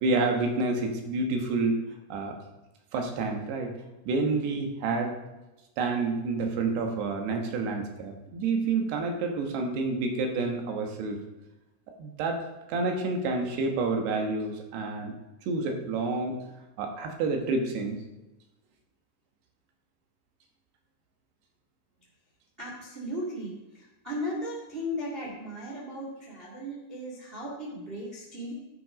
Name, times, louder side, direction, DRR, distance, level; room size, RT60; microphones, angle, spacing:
voice 1, 0.0-1.8 2.1-2.4 2.9-3.7 4.1-5.2 5.8-11.2 12.0-15.1 15.4-16.4 16.8-18.0, right 3 dB, 90° right, 3 dB, 3.4 m, -29 dB
voice 2, 22.6-28.5, equal, 20° right, -4 dB, 1.4 m, -36 dB
12.0 x 6.3 x 5.0 m, 1.0 s
omnidirectional pair, 4.6 m